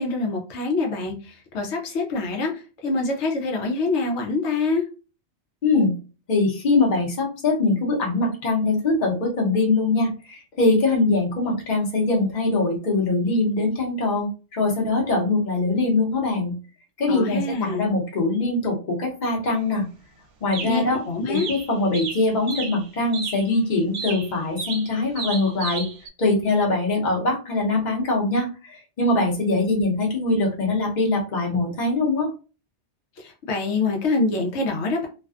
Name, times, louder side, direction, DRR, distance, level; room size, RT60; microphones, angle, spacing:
voice 1, 0.0-4.9 17.1-17.9 20.6-21.5 33.2-35.1, left 3 dB, 80° left, 1 dB, 0.9 m, -25 dB
voice 2, 5.6-5.9 6.3-16.5 17.0-19.9 20.4-21.0 21.3-25.8 26.2-32.3, left 2 dB, 45° left, -1 dB, 0.9 m, -22 dB
sound 1, 19.5-19.6 20.5-21.0 21.3-22.8 23.1-23.5 23.9-26.1, right 5 dB, 70° right, 0.8 m, -33 dB
2.5 x 2.2 x 2.3 m, 0.34 s
omnidirectional pair, 1.2 m